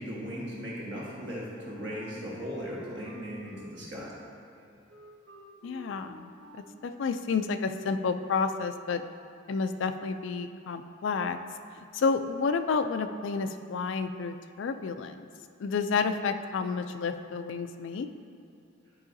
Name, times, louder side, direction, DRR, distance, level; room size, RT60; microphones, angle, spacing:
voice 1, 0.0-4.1, equal, 60° right, -6 dB, 1.6 m, -38 dB
Wind instrument woodwind instrument, 1.5-7.4, right 2 dB, 85° right, 1.1 m, -52 dB
voice 2, 5.6-6.3 6.8-9.0 9.5-11.4 11.7-15.3 15.6-18.1, left 5 dB, 75° left, 9 dB, 0.4 m, -30 dB
10.5 x 4.8 x 2.6 m, 2.6 s
head